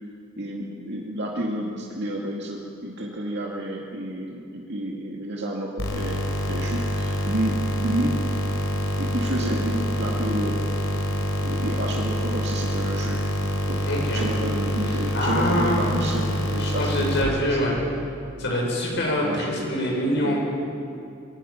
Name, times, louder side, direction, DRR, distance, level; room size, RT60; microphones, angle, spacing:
voice 1, 0.4-6.2 6.5-8.2 9.0-10.6 11.4-13.2 13.7-13.8 14.1-17.8 18.9-19.6 20.2-20.4, right 1 dB, 60° right, -2 dB, 2.3 m, -30 dB
sound 1, 5.8-17.2, equal, 80° left, 4.1 m, -26 dB
voice 2, 13.8-14.3 14.9-16.3 16.6-17.8 18.4-20.4, left 1 dB, 60° left, -2 dB, 7.3 m, -25 dB
24.5 x 23.5 x 5.9 m, 2.5 s
head